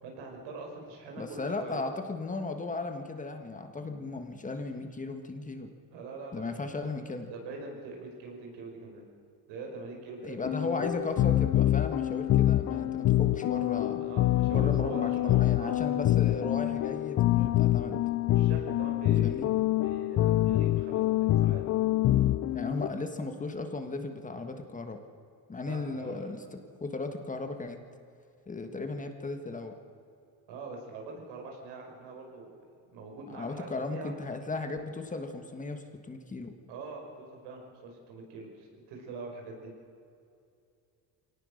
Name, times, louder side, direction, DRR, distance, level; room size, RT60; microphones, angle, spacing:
voice 1, 0.0-1.9 5.9-6.7 7.3-9.0 9.5-10.5 14.0-15.8 18.3-19.5 19.8-21.6 25.6-26.4 30.5-32.7 32.9-34.1 36.7-39.7, right 3 dB, 85° right, 1 dB, 5.6 m, -43 dB
voice 2, 1.2-5.7 6.3-7.3 10.2-14.0 14.5-18.0 19.2-19.5 22.5-25.0 25.5-27.8 28.5-29.8 33.3-36.5, left 3 dB, 20° left, 6 dB, 1.6 m, -36 dB
sound 1, 10.4-22.9, left 14 dB, 45° left, 0.5 m, -26 dB
24.0 x 18.0 x 6.6 m, 2.5 s
cardioid pair, 135°, 40 cm